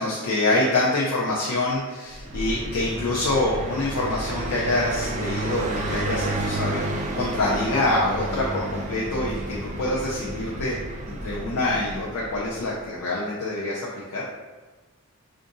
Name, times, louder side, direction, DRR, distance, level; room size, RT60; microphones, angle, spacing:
voice 1, 0.0-10.8 11.1-14.2, left 2 dB, 90° left, -5 dB, 0.5 m, -26 dB
Car passing by, 2.1-12.7, right 1 dB, 35° right, 0.3 m, -31 dB
4.5 x 2.5 x 2.6 m, 1.3 s
head